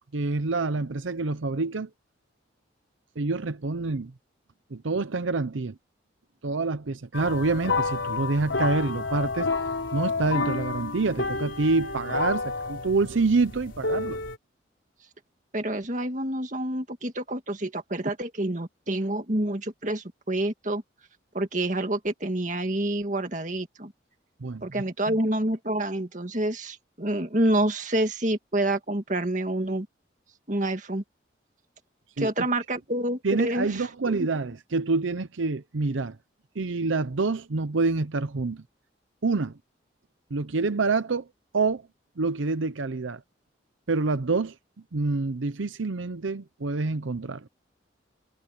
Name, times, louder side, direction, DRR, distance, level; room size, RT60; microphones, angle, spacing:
voice 1, 0.1-1.9 3.2-4.1 4.7-5.8 6.4-9.5 9.9-14.2 24.4-24.6 25.1-25.2 32.2-32.3 33.2-36.2 36.6-38.6 39.2-39.5 40.3-41.3 41.5-41.8 42.2-43.2 43.9-44.5 44.9-47.5, right 3 dB, 90° right, 0.8 m, -27 dB
sound 1, 7.1-14.4, left 3 dB, 80° left, 3.9 m, -30 dB
voice 2, 15.5-20.8 21.3-23.9 24.6-29.9 30.5-31.0 32.2-34.3, right 1 dB, 40° right, 2.0 m, -28 dB
head